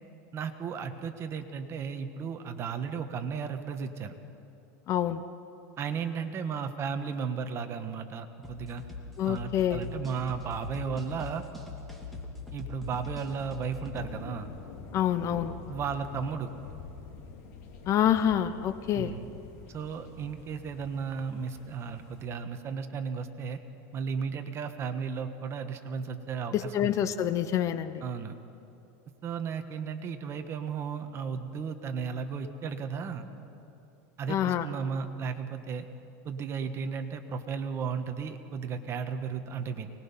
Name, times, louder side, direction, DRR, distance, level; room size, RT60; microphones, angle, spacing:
voice 1, 0.3-4.1 5.8-8.8 9.2-11.4 12.5-14.5 15.7-16.5 18.9-19.3 19.7-23.6 23.9-26.9 28.0-28.3 29.2-33.3 34.2-35.9 36.2-39.9, right 6 dB, 30° right, 7 dB, 1.3 m, -34 dB
voice 2, 4.9-5.2 9.2-9.8 14.9-15.5 17.9-19.1 26.5-28.0 34.3-34.7, left 10 dB, 35° left, 13 dB, 0.7 m, -27 dB
sound 1, 8.4-14.0, left 3 dB, ahead, 2.7 m, -42 dB
sound 2, 13.9-22.3, left 5 dB, 65° left, 2.9 m, -47 dB
24.5 x 20.0 x 5.6 m, 2.7 s
supercardioid pair, 140°, 9 cm